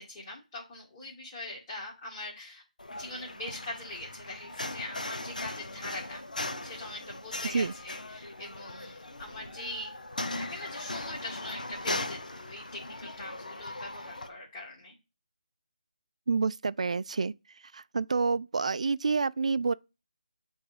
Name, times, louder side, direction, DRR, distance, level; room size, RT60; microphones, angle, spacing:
voice 1, 0.0-2.6 2.9-6.2 6.6-9.9 10.3-15.0, left 2 dB, 25° left, 2.0 m, -42 dB
sound 1, 2.8-14.3, left 2 dB, 80° left, 1.0 m, -39 dB
voice 2, 16.3-17.3 17.7-19.7, right 4 dB, 55° right, 0.4 m, -28 dB
7.9 x 3.5 x 5.0 m
figure-of-eight pair, 155°, 4 cm